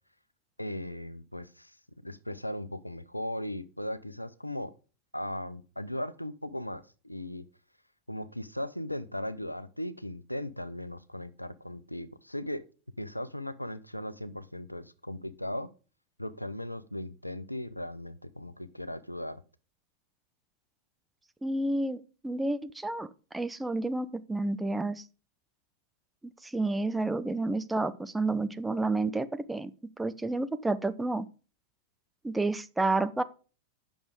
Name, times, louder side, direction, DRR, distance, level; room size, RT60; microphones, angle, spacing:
voice 1, 0.6-1.8 2.0-4.7 5.1-7.4 8.1-12.6 13.0-15.7 16.2-19.4, left 1 dB, 85° left, 15 dB, 0.6 m, -37 dB
voice 2, 21.4-25.0 26.2-29.7 30.0-31.3 32.2-33.2, right 2 dB, 5° right, 11 dB, 0.6 m, -30 dB
8.8 x 6.2 x 4.9 m, 0.35 s
figure-of-eight pair, 90°, 0 cm